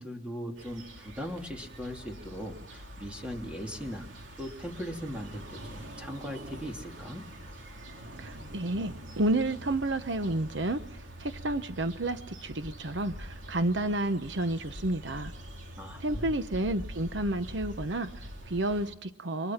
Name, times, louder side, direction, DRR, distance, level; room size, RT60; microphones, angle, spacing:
voice 1, 0.0-4.1 4.4-7.3 15.8-16.2, equal, 5° right, 1 dB, 2.9 m, -39 dB
sound 1, 0.6-18.9, equal, 90° right, 3.4 m, -45 dB
voice 2, 8.1-15.3 16.0-19.5, right 1 dB, 70° right, 10 dB, 1.0 m, -31 dB
29.0 x 24.0 x 5.9 m, 0.84 s
head